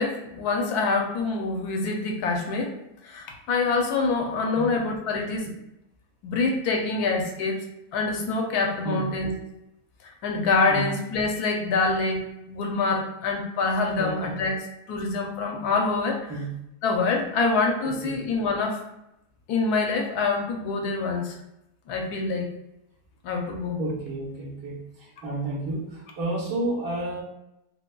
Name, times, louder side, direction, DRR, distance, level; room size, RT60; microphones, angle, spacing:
voice 1, 0.0-2.8 3.0-5.5 6.2-7.6 7.9-9.3 10.0-16.3 16.8-18.8 19.5-21.4 21.9-22.5 23.2-23.8, left 3 dB, 75° left, 2 dB, 1.1 m, -26 dB
voice 2, 14.0-14.4 16.3-16.5 17.8-18.1 23.8-27.2, right 2 dB, 70° right, -4 dB, 1.6 m, -31 dB
4.5 x 2.2 x 2.2 m, 0.87 s
omnidirectional pair, 1.8 m